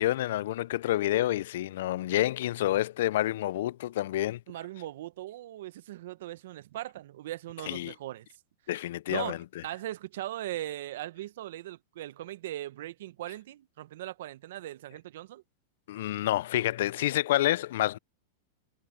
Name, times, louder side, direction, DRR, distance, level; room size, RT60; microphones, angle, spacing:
voice 1, 0.0-4.4 7.7-7.9 8.7-9.4 15.9-18.0, left 14 dB, 70° left, 0.4 m, -28 dB
voice 2, 4.5-8.3 9.1-15.4, right 14 dB, 70° right, 1.0 m, -39 dB
hypercardioid pair, 120°, 0 cm